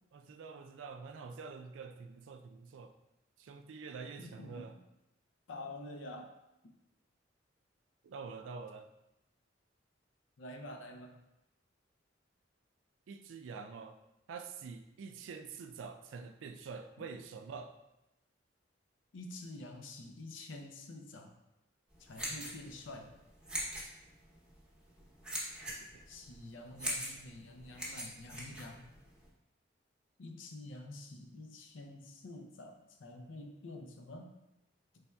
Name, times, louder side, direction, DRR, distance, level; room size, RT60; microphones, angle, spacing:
voice 1, 0.1-2.9 3.4-4.8 8.0-8.9 13.1-14.0 14.3-17.7 25.7-26.0, right 5 dB, 90° right, 7 dB, 0.3 m, -46 dB
voice 2, 4.2-4.8 5.5-6.3 10.4-11.2 19.1-21.3 22.0-23.1 26.1-28.9 30.2-34.4, left 2 dB, 90° left, 4 dB, 0.5 m, -48 dB
sound 1, 21.9-29.3, right 1 dB, 5° right, 0.7 m, -42 dB
4.1 x 3.4 x 2.2 m, 0.92 s
head